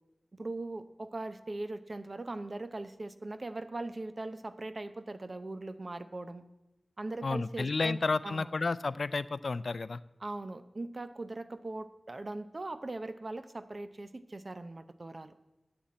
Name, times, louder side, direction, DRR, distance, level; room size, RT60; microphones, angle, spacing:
voice 1, 0.3-6.4 7.0-8.5 10.2-15.3, right 2 dB, 45° right, 11 dB, 0.6 m, -40 dB
voice 2, 7.2-10.0, left 3 dB, 70° left, 16 dB, 0.3 m, -31 dB
7.9 x 7.1 x 8.6 m, 0.97 s
wide cardioid pair, 70°, 0 cm